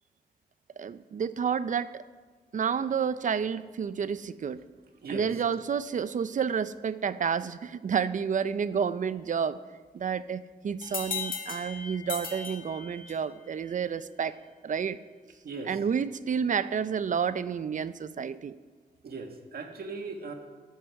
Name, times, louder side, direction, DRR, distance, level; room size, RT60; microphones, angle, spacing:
voice 1, 0.8-2.0 2.5-4.6 5.1-9.6 9.9-14.3 14.6-15.0 15.6-18.6, right 7 dB, 50° right, 15 dB, 0.5 m, -30 dB
sound 1, 10.8-13.4, left 5 dB, 55° left, 2.0 m, -37 dB
voice 2, 19.0-20.3, right 4 dB, 70° right, 4 dB, 1.6 m, -38 dB
13.5 x 11.0 x 4.8 m, 1.5 s
wide cardioid pair, 115°, 16 cm